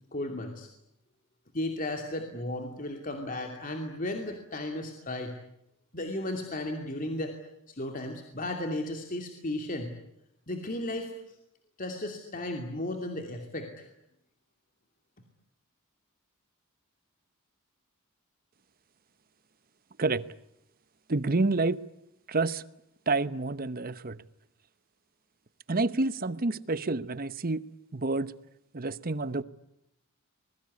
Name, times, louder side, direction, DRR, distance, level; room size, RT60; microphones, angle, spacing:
voice 1, 0.1-0.7 1.5-5.4 5.9-7.4 7.7-9.9 10.5-11.3 11.8-13.9, left 1 dB, 40° left, 2.7 m, -35 dB
voice 2, 21.1-21.8 22.3-22.6 23.1-24.2 25.7-27.6 27.9-28.3 28.7-29.4, right 3 dB, 40° right, 0.9 m, -28 dB
26.0 x 21.5 x 9.7 m
head